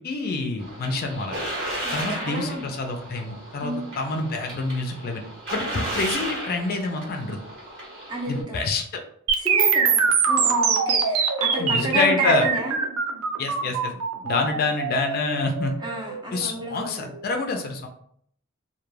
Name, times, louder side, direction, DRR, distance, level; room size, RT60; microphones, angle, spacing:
voice 1, 0.0-1.4 1.9-5.2 5.5-7.4 8.3-9.0 11.6-12.5 13.4-13.9 14.2-15.7 16.3-17.9, left 3 dB, 45° left, 4 dB, 0.4 m, -27 dB
sound 1, 0.6-8.4, right 1 dB, 55° right, 1.2 m, -34 dB
voice 2, 1.8-2.7 3.6-3.9 8.1-8.6 9.4-12.8 14.2-14.6 15.8-17.1, right 1 dB, 20° right, -1 dB, 0.6 m, -31 dB
sound 2, 9.3-17.2, right 5 dB, 75° right, 0.4 m, -23 dB
2.2 x 2.2 x 3.1 m, 0.64 s
head